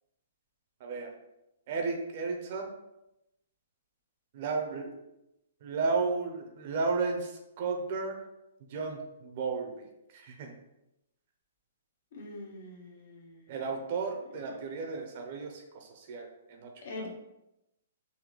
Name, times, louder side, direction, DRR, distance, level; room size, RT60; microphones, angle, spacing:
voice 1, 0.8-1.1 1.7-2.7 4.3-5.0 5.6-8.2 8.7-10.5 13.5-17.1, right 4 dB, 45° right, 3 dB, 0.7 m, -34 dB
voice 2, 12.1-13.6 14.4-14.6 16.8-17.1, left 2 dB, 65° left, 0 dB, 1.1 m, -44 dB
4.0 x 2.7 x 3.1 m, 0.89 s
hypercardioid pair, 155°, 0 cm